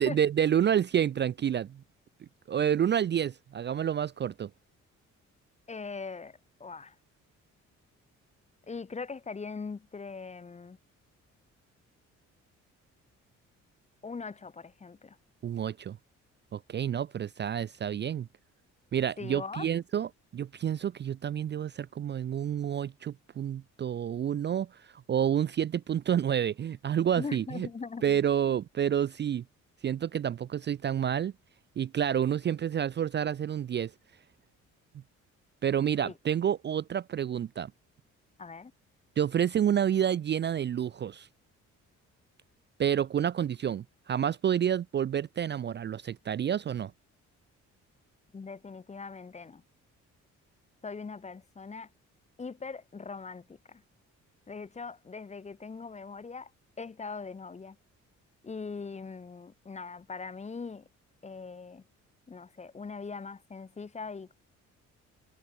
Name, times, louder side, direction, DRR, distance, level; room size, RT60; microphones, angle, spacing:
voice 1, 0.0-1.8 2.5-4.5 15.4-16.0 16.5-18.3 18.9-24.7 25.1-27.7 28.0-29.4 29.8-31.3 31.8-33.9 35.6-37.7 39.2-41.3 42.8-46.9, right 9 dB, 35° right, 0.4 m, -29 dB
voice 2, 5.7-6.9 8.7-10.8 14.0-15.2 19.2-19.7 27.1-28.2 36.0-36.1 38.4-38.7 48.3-49.6 50.8-51.9 52.4-53.8 54.5-56.5 56.8-57.8 58.4-60.9 61.2-61.8 62.3-64.3, left 4 dB, 20° left, 0.8 m, -41 dB
cardioid pair, 90°, 30 cm